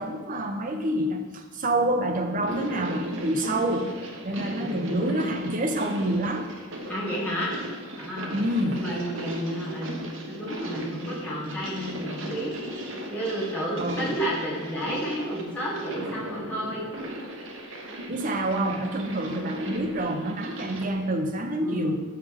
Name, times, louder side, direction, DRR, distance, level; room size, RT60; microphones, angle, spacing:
voice 1, 0.0-6.5 8.3-8.9 13.8-14.1 18.1-22.0, right 1 dB, 40° right, 5 dB, 0.7 m, -27 dB
sound 1, 2.3-20.9, right 1 dB, 65° right, 1.0 m, -37 dB
voice 2, 4.4-5.4 6.9-7.5 8.0-12.5 13.1-16.9 21.6-22.0, equal, 5° left, -7 dB, 2.0 m, -32 dB
6.1 x 5.8 x 4.9 m, 1.5 s
head